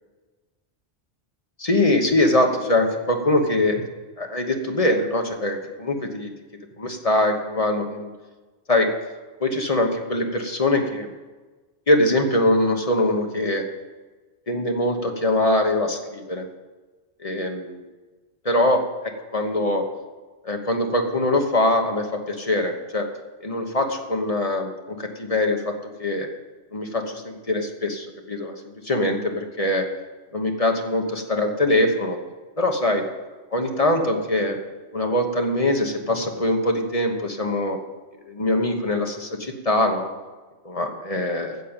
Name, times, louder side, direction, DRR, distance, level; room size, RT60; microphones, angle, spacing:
voice 1, 1.6-3.9 4.2-6.3 6.8-8.1 8.7-8.9 9.4-11.1 11.9-13.6 14.5-16.5 17.2-17.8 18.4-19.8 20.4-23.1 23.4-25.7 26.0-26.3 26.7-28.5 28.8-29.9 30.3-32.2 32.6-33.0 33.5-34.6 34.9-37.8 38.3-40.1 40.6-41.6, left 1 dB, 35° left, 3 dB, 1.2 m, -23 dB
9.5 x 7.5 x 8.9 m, 1.3 s
omnidirectional pair, 1.1 m